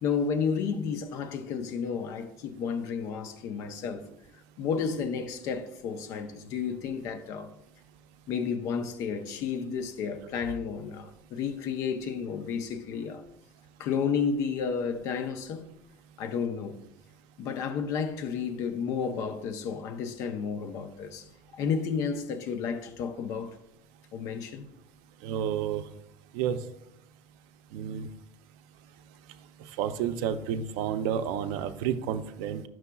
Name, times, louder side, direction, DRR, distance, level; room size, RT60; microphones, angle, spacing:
voice 1, 0.0-4.1 4.6-7.5 8.3-13.2 13.8-15.7 16.2-16.8 17.4-23.6 24.1-24.7, left 6 dB, 50° left, 0.6 m, -32 dB
voice 2, 25.2-25.8 26.3-26.6 27.7-28.1 29.6-32.6, right 9 dB, 85° right, 0.5 m, -30 dB
9.4 x 6.2 x 2.3 m
cardioid pair, 175°, 7 cm